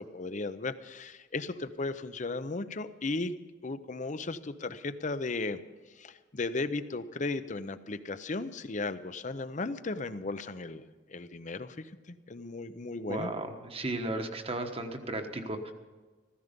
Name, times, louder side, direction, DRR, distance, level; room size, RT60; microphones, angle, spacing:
voice 1, 0.0-3.4 3.6-5.6 6.0-13.3, left 3 dB, 40° left, 12 dB, 0.7 m, -36 dB
voice 2, 13.1-15.7, right 2 dB, 30° right, 6 dB, 1.2 m, -35 dB
14.5 x 14.5 x 5.2 m, 1.3 s
head